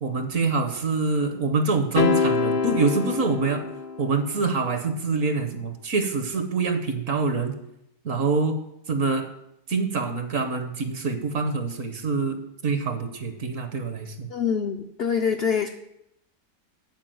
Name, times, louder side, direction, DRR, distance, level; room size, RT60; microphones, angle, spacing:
voice 1, 0.0-3.6 4.0-7.5 8.0-8.6 8.9-9.3 9.7-14.3, right 4 dB, 60° right, 8 dB, 1.1 m, -25 dB
sound 1, 2.0-4.4, left 6 dB, 85° left, 1.4 m, -25 dB
voice 2, 14.3-15.7, left 6 dB, 70° left, 6 dB, 0.6 m, -25 dB
9.1 x 4.6 x 7.5 m, 0.82 s
omnidirectional pair, 1.7 m